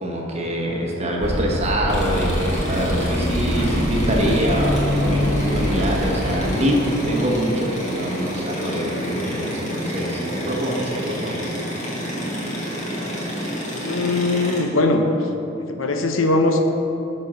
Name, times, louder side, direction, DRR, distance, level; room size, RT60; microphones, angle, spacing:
voice 1, 0.0-6.8 7.0-11.4, equal, 30° right, -1 dB, 1.3 m, -25 dB
sound 1, 1.2-6.4, equal, 50° right, 1.3 m, -24 dB
sound 2, 1.9-14.6, equal, 35° left, 2.2 m, -28 dB
voice 2, 13.8-15.3 15.7-16.6, left 2 dB, 75° left, 4 dB, 0.8 m, -20 dB
9.9 x 4.4 x 6.3 m, 3.0 s
head